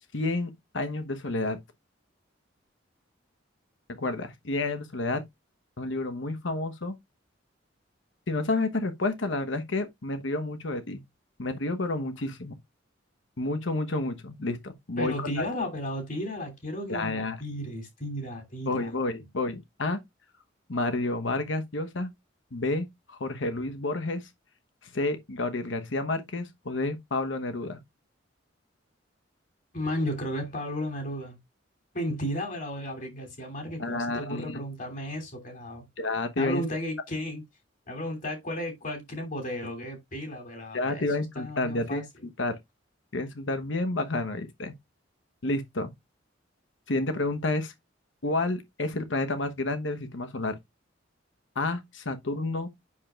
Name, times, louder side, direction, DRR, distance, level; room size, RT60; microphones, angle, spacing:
voice 1, 0.1-1.6 4.0-5.2 5.8-7.0 8.3-11.0 11.4-12.6 13.4-15.4 16.9-17.4 18.7-20.0 20.7-22.1 22.5-24.2 24.8-27.8 33.8-34.6 36.0-36.6 40.7-42.0 42.4-42.6 43.1-44.7 45.4-45.9 46.9-47.7 48.2-50.6 51.6-52.7, left 2 dB, 75° left, 1.0 m, -30 dB
voice 2, 15.0-18.9 29.7-31.4 31.9-35.8 36.4-37.4 37.9-41.1 41.3-42.0, equal, 45° left, 2.9 m, -34 dB
8.4 x 6.7 x 2.4 m
head